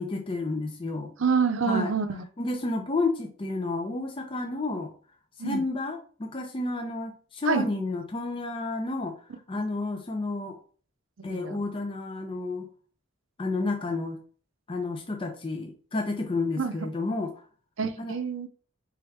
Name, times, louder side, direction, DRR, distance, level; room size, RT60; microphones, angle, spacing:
voice 1, 0.0-1.1 1.7-1.9 2.4-4.9 5.4-9.1 9.5-10.6 11.2-12.7 13.4-14.2 14.7-17.3 18.0-18.1, left 3 dB, 25° left, 0.4 m, -31 dB
voice 2, 1.2-2.2 5.4-5.6 7.5-7.6 11.3-11.6 16.6-16.7 17.8-18.5, right 5 dB, 70° right, 0.5 m, -27 dB
4.5 x 3.6 x 3.2 m
head